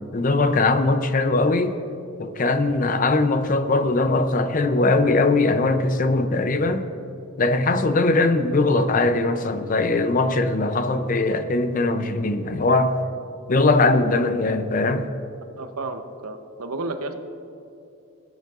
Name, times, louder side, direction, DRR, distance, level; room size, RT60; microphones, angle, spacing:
voice 1, 0.1-1.8 2.2-6.9 7.4-12.9 13.5-15.0, left 2 dB, 35° left, 9 dB, 0.5 m, -20 dB
voice 2, 15.6-17.1, right 2 dB, 80° right, 7 dB, 0.8 m, -32 dB
17.5 x 9.2 x 2.5 m, 2.7 s
head